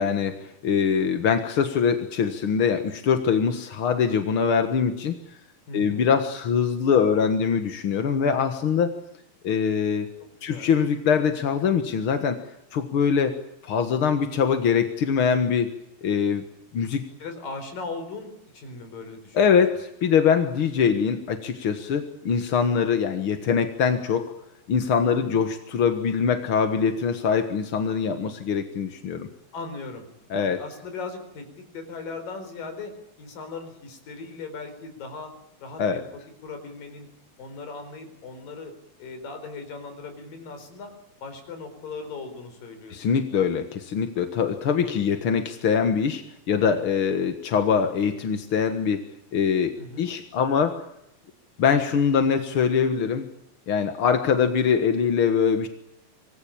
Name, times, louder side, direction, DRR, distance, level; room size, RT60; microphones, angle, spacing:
voice 1, 0.0-5.2 5.7-8.9 9.4-10.1 10.4-12.4 12.7-13.4 13.6-15.7 16.0-16.4 16.7-17.0 19.3-24.3 24.7-29.3 30.3-30.6 35.8-36.0 42.9-49.0 49.3-50.8 51.6-53.3 53.7-55.7, left 6 dB, 50° left, 7 dB, 1.6 m, -23 dB
voice 2, 5.7-6.1 10.4-10.7 17.2-19.6 25.0-25.3 29.5-30.1 30.4-32.9 33.2-35.3 35.6-36.1 36.4-37.1 37.4-38.7 39.0-40.9 41.2-43.0 49.8-50.1, left 3 dB, 65° left, 7 dB, 6.1 m, -38 dB
25.5 x 19.5 x 8.7 m, 0.83 s
omnidirectional pair, 4.2 m